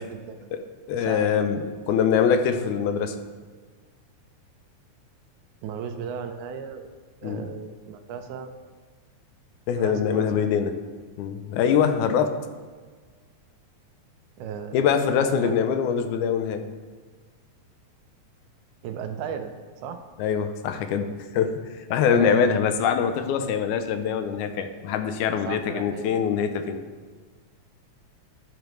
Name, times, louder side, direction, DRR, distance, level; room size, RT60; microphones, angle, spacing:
voice 1, 0.0-0.5 1.0-1.5 5.6-6.8 7.2-8.5 9.7-10.7 14.4-15.7 18.8-19.5 19.8-20.0 22.0-22.3 23.4-23.5 25.5-26.1, right 7 dB, 85° right, 7 dB, 2.1 m, -36 dB
voice 2, 0.5-3.2 7.2-7.5 9.7-10.8 11.2-12.4 14.7-16.7 20.2-26.8, left 7 dB, 85° left, 8 dB, 2.1 m, -24 dB
12.0 x 5.1 x 3.1 m, 1.5 s
omnidirectional pair, 3.4 m